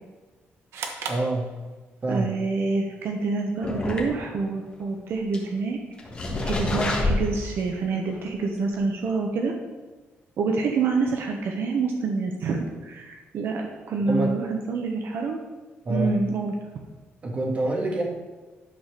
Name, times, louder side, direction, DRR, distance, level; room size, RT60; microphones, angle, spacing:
sound 1, 0.7-2.1, right 5 dB, 90° right, 1.2 m, -36 dB
voice 1, 1.1-1.5 2.0-2.3 14.1-14.3 15.8-16.1 17.2-18.0, right 1 dB, 30° right, 1 dB, 1.6 m, -26 dB
voice 2, 2.1-5.8 6.4-9.5 10.4-15.4 15.9-16.5, right 4 dB, 60° right, 2 dB, 1.0 m, -27 dB
sound 2, 3.6-4.5 4.8-4.9 5.3-5.4 6.0-7.7 8.1-8.2 8.8-8.9, left 2 dB, 25° left, 1.5 m, -27 dB
11.5 x 4.2 x 6.6 m, 1.2 s
cardioid pair, 170°, 4 cm